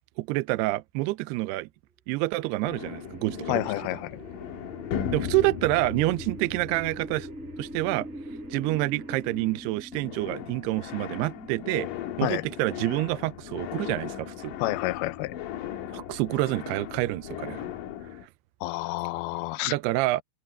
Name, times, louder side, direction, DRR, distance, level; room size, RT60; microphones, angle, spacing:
voice 1, 0.2-1.7 2.1-3.7 5.1-7.3 7.6-8.1 8.5-11.9 12.2-14.5 15.9-17.7 19.7-20.2, right 20 dB, 80° right, 2.6 m, -27 dB
sound 1, 2.4-9.6, right 2 dB, 35° right, 8.4 m, -51 dB
sound 2, 2.6-9.6 9.9-18.3, left 9 dB, 65° left, 2.4 m, -38 dB
sound 3, 3.1-15.0, right 1 dB, ahead, 1.1 m, -44 dB
voice 2, 3.5-4.2 12.2-12.5 14.6-15.4 18.6-19.7, left 19 dB, 80° left, 2.3 m, -29 dB
omnidirectional pair, 5.0 m